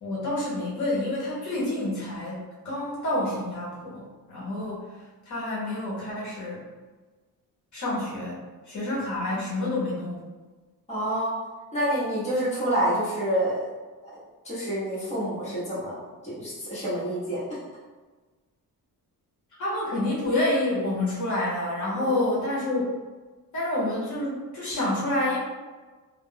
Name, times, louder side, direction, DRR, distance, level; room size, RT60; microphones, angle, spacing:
voice 1, 0.0-4.9 5.3-6.6 7.7-10.2 19.6-22.9 23.5-25.4, left 1 dB, 50° left, -7 dB, 0.8 m, -28 dB
voice 2, 10.9-11.4 11.7-13.7 14.4-15.9 16.2-17.4 22.0-22.4, right 1 dB, 20° left, -10 dB, 1.0 m, -28 dB
2.3 x 2.0 x 3.6 m, 1.3 s
wide cardioid pair, 175°, 37 cm